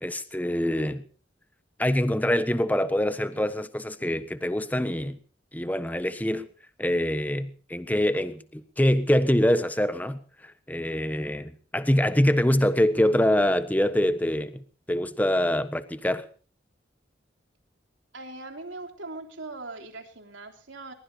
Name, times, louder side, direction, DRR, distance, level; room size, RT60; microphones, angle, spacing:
voice 1, 0.0-1.0 1.8-5.2 5.5-6.5 6.8-14.6 14.9-16.2, left 1 dB, 10° left, 1.2 m, -25 dB
voice 2, 18.1-20.9, right 2 dB, 85° right, 3.5 m, -40 dB
22.5 x 21.0 x 2.9 m
head